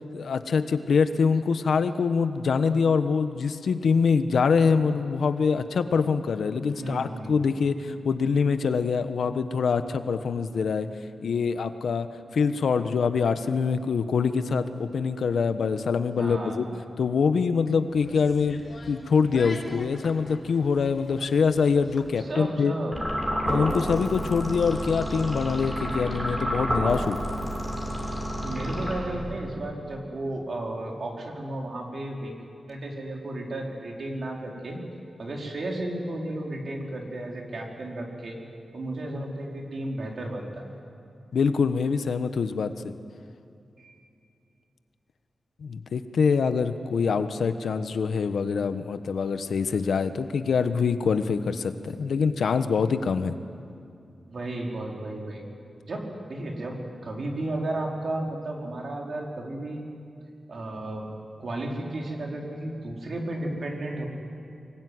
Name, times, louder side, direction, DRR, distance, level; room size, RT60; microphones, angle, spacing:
voice 1, 0.1-10.9 11.2-12.1 12.3-16.6 17.0-22.7 23.5-27.2 41.3-42.9 45.6-53.3, left 5 dB, 80° left, 10 dB, 1.2 m, -24 dB
voice 2, 6.8-7.3 16.2-16.6 22.2-23.0 28.4-32.4 32.7-34.8 35.2-38.4 38.7-40.6 43.8-44.0 54.2-55.4 55.8-59.8 60.5-61.0 61.4-64.1, right 1 dB, 50° right, 0 dB, 4.5 m, -33 dB
sound 1, 17.9-22.2, left 3 dB, 50° left, 3.2 m, -44 dB
sound 2, 22.9-29.4, equal, 15° right, 6.0 m, -30 dB
25.0 x 22.5 x 9.6 m, 2.5 s
wide cardioid pair, 150°, 0 cm